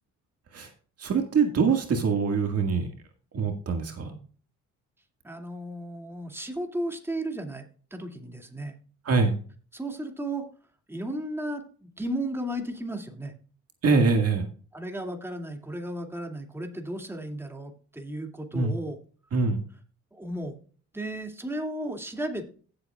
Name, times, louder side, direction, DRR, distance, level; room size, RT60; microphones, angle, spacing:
voice 1, 1.0-2.9 3.3-4.2 9.1-9.3 13.8-14.5 18.5-18.7 19.3-19.6, right 4 dB, 55° right, 4 dB, 1.8 m, -24 dB
voice 2, 5.2-8.7 9.7-10.5 10.9-13.3 14.7-19.0 20.1-20.6 20.9-22.5, right 1 dB, 10° right, 3 dB, 2.3 m, -34 dB
16.0 x 7.8 x 2.4 m, 0.40 s
cardioid pair, 90°, 30 cm